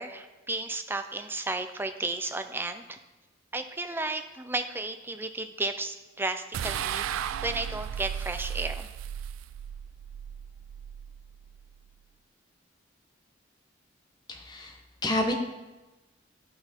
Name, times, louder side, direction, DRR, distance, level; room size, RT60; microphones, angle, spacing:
voice 1, 0.0-3.0 3.5-7.1 7.4-8.9, right 2 dB, 10° right, 8 dB, 0.4 m, -33 dB
sound 1, 6.5-11.9, right 9 dB, 85° right, 0.3 m, -35 dB
voice 2, 14.3-15.3, left 1 dB, 20° left, 2 dB, 1.0 m, -29 dB
11.5 x 5.9 x 4.4 m, 1.1 s
head